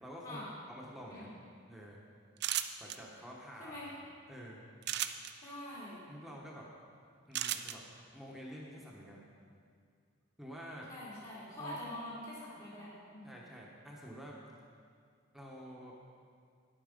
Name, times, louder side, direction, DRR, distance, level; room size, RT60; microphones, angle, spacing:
voice 1, 0.0-0.4 0.7-1.3 1.7-2.0 2.8-3.8 4.3-4.6 6.1-6.7 7.3-7.8 8.1-9.2 10.4-10.9 11.6-11.8 13.2-14.4 15.3-15.9, equal, ahead, -4 dB, 1.1 m, -48 dB
sound 1, 2.4-3.0 4.8-5.3 7.3-7.7, right 12 dB, 55° right, 0.4 m, -34 dB
voice 2, 5.3-6.0 10.9-13.3, left 1 dB, 45° left, -8 dB, 2.6 m, -45 dB
10.0 x 8.6 x 5.2 m, 2.2 s
head